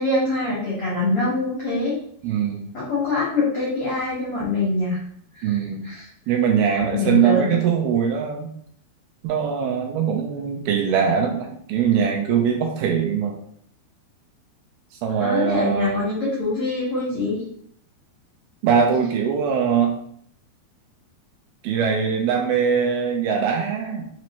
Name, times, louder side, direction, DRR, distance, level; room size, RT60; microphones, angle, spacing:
voice 1, 0.0-1.9 2.7-5.0 5.3-6.1 6.8-7.6 15.2-17.4, left 2 dB, 85° left, -7 dB, 1.2 m, -24 dB
voice 2, 2.2-2.7 5.4-5.9 6.3-8.5 9.2-13.3 15.0-16.1 18.6-19.9 21.6-24.1, right 7 dB, 80° right, 1 dB, 2.3 m, -22 dB
6.1 x 2.9 x 3.0 m, 0.66 s
omnidirectional pair, 4.7 m